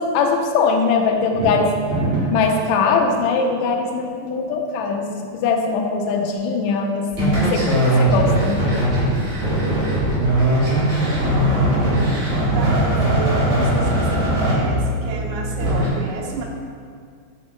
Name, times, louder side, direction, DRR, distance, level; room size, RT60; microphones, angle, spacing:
voice 1, 0.0-1.7 2.3-8.7, left 4 dB, 85° left, 2 dB, 1.6 m, -21 dB
sound 1, 1.2-2.5, right 2 dB, 60° right, 2.7 m, -23 dB
sound 2, 7.1-15.9, right 1 dB, 40° right, 1.8 m, -19 dB
voice 2, 11.0-16.4, right 3 dB, 75° right, 0 dB, 1.9 m, -32 dB
7.7 x 7.2 x 2.2 m, 2.2 s
omnidirectional pair, 4.0 m